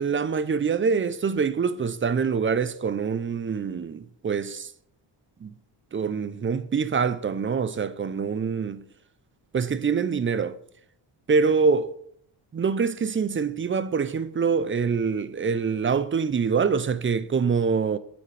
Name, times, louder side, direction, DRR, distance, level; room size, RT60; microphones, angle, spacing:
voice 1, 0.0-4.7 5.4-5.5 5.9-8.8 9.5-10.6 11.3-11.9 12.5-18.0, right 5 dB, 25° right, 0.5 m, -25 dB
8.7 x 7.0 x 3.3 m
cardioid pair, 75°, 49 cm